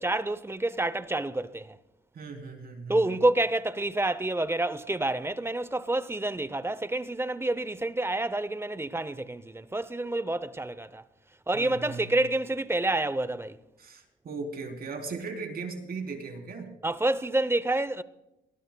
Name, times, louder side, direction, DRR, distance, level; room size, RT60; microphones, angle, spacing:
voice 1, 0.0-1.8 2.9-11.0 11.5-13.6 16.8-18.0, right 2 dB, 10° right, 0.7 m, -28 dB
voice 2, 2.1-3.1 11.5-12.2 13.8-16.7, right 4 dB, 50° right, 3.5 m, -38 dB
23.0 x 19.5 x 2.2 m
cardioid pair, 90°, 20 cm